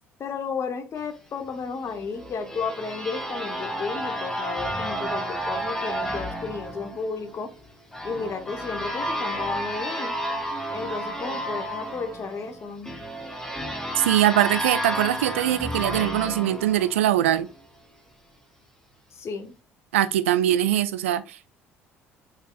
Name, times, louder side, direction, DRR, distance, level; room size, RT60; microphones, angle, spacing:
voice 1, 0.2-7.5 8.0-10.1 10.7-12.9 19.1-19.5, left 5 dB, 40° left, 0.8 m, -33 dB
sound 1, 1.9-17.5, equal, 5° left, 0.9 m, -32 dB
voice 2, 14.0-17.5 19.9-21.5, right 12 dB, 75° right, 0.3 m, -22 dB
4.5 x 3.3 x 2.3 m
figure-of-eight pair, 55°, 7 cm